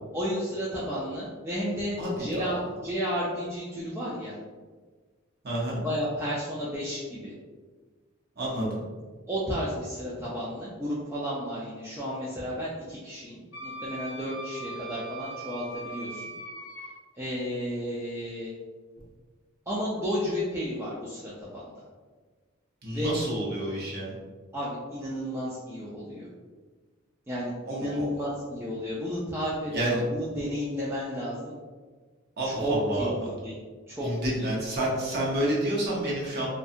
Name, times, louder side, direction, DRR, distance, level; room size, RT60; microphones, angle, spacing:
voice 1, 0.1-4.4 5.8-7.3 9.3-16.2 17.2-18.6 19.7-21.7 22.9-23.1 24.5-26.3 27.3-31.5 32.4-33.5 33.9-34.5, equal, 10° right, -8 dB, 0.3 m, -32 dB
voice 2, 2.0-2.5 5.4-5.8 8.4-8.9 22.8-24.2 27.7-28.1 29.7-30.0 32.4-33.1 34.0-36.5, right 1 dB, 50° right, -5 dB, 0.7 m, -29 dB
Wind instrument woodwind instrument, 13.5-16.9, right 1 dB, 70° left, 0.7 m, -40 dB
2.7 x 2.2 x 2.4 m, 1.4 s
head